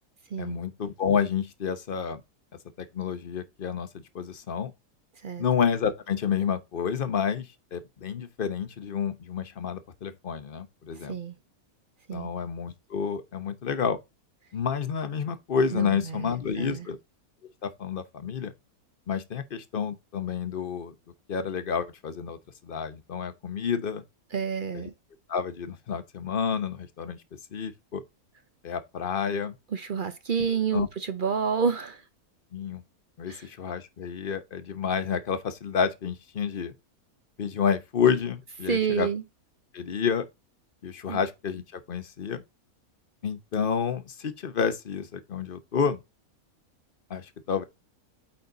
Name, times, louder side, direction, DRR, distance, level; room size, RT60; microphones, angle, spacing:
voice 1, 0.4-2.2 2.8-4.7 5.4-11.2 12.1-14.0 14.5-17.0 17.6-18.5 19.1-20.9 21.3-24.0 24.7-24.9 25.3-27.2 27.5-28.0 28.6-29.6 30.7-30.9 32.5-32.8 33.2-36.7 37.4-39.1 39.7-40.3 40.8-42.4 43.2-46.0 47.1-47.6, left 7 dB, 45° left, 0.9 m, -29 dB
voice 2, 15.7-16.9 24.3-24.9 29.7-32.0 33.3-33.5 38.7-39.2 41.1-41.2, right 6 dB, 50° right, 0.7 m, -29 dB
8.7 x 4.1 x 3.9 m
omnidirectional pair, 1.5 m